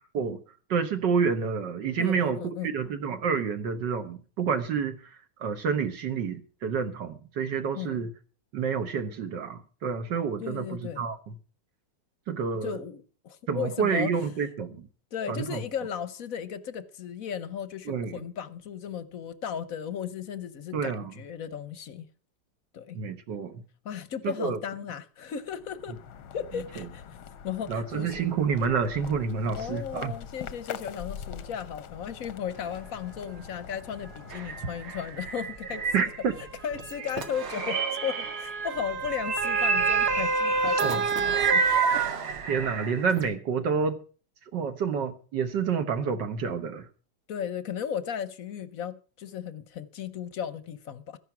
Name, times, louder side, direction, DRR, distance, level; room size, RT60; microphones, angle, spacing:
voice 1, 0.7-8.1 8.5-11.3 12.3-12.8 13.5-14.9 15.3-15.6 17.9-18.2 20.7-21.1 22.9-23.6 24.2-24.6 26.5-26.9 27.7-30.1 35.9-36.3 40.8-41.0 42.5-44.0 44.5-46.9, right 6 dB, 65° right, 1.7 m, -29 dB
voice 2, 2.0-2.7 7.7-8.1 10.4-11.0 12.6-14.2 15.1-22.1 22.7-23.0 23.8-26.0 26.3-27.2 27.4-28.3 29.5-36.1 36.6-41.7 41.9-42.0 47.3-51.2, left 8 dB, 55° left, 1.1 m, -35 dB
sound 1, 25.3-36.0, left 8 dB, 90° left, 1.8 m, -44 dB
Motor vehicle (road) / Siren, 32.9-33.0 33.9-34.1 35.2-42.8 43.2-43.3, right 5 dB, 40° right, 1.1 m, -28 dB
sound 2, 34.3-36.4 36.8-38.6 39.0-43.2, right 4 dB, 90° right, 2.9 m, -32 dB
14.0 x 11.0 x 6.0 m
omnidirectional pair, 2.2 m